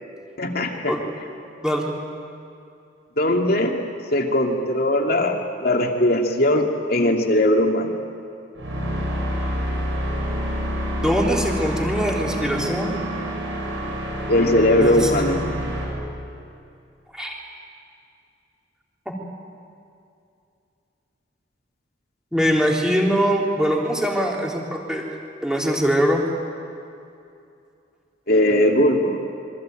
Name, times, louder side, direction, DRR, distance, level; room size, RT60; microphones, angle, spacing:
voice 1, 0.4-0.9 3.2-3.8 4.1-8.0 14.3-15.4 28.3-29.2, left 1 dB, 55° left, 2 dB, 2.7 m, -19 dB
sound 1, 8.6-15.8, equal, 80° right, 7.7 m, -27 dB
voice 2, 11.0-13.0 14.8-15.5 17.1-17.3 19.1-19.2 22.3-25.0 25.4-26.3, equal, 5° right, -2 dB, 3.5 m, -22 dB
27.0 x 23.0 x 9.1 m, 2.6 s
head